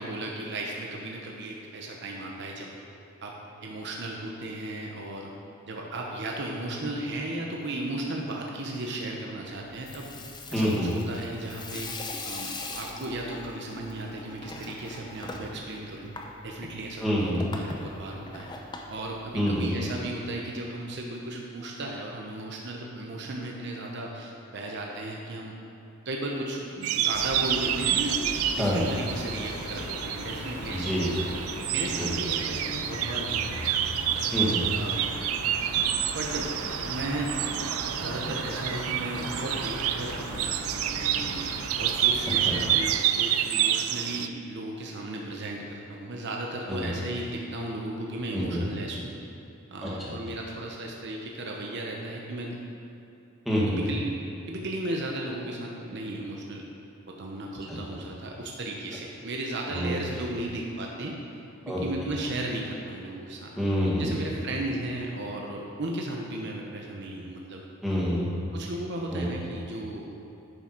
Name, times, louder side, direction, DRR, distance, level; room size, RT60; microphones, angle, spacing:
voice 1, 0.0-2.7 3.2-3.3 3.6-5.3 5.7-10.1 10.5-12.0 12.2-16.1 16.4-18.5 18.9-25.5 26.0-31.3 31.7-33.6 34.7-35.1 36.1-37.7 38.0-41.5 41.8-49.1 49.7-52.6 53.7-54.2 54.5-56.7 57.1-61.2 61.7-63.5 64.0-67.6 68.5-70.1, right 1 dB, 55° right, -1 dB, 0.9 m, -35 dB
Water tap faucet / Sink (filling or washing), 9.7-19.9, left 2 dB, 20° left, 0.7 m, -41 dB
voice 2, 10.5-10.9 17.0-17.4 19.3-19.7 28.6-28.8 30.7-31.3 32.0-32.1 34.3-34.6 42.5-42.6 46.7-46.9 48.3-48.6 49.8-50.1 53.5-53.8 57.7-57.8 59.7-59.9 61.7-61.8 63.6-64.2 67.8-68.3 69.1-69.2, equal, ahead, -7 dB, 2.0 m, -27 dB
sound 1, 26.8-44.3, right 10 dB, 85° right, 0.4 m, -29 dB
sound 2, 27.1-42.9, left 2 dB, 55° left, 0.9 m, -39 dB
10.5 x 6.0 x 4.5 m, 2.8 s
head